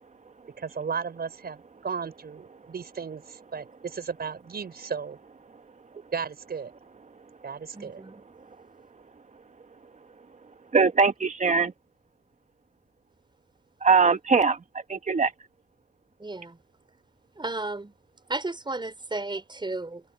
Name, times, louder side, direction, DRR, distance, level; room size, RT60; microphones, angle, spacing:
voice 1, 0.6-5.2 6.1-6.7 7.4-8.0, right 6 dB, 65° right, 5.7 m, -35 dB
voice 2, 7.7-8.2 16.2-16.6 17.4-17.9 18.3-20.0, right 2 dB, 25° right, 5.9 m, -33 dB
voice 3, 10.7-11.7 13.8-14.6 14.9-15.3, right 5 dB, 45° right, 1.5 m, -21 dB
cardioid pair, 75°, 17 cm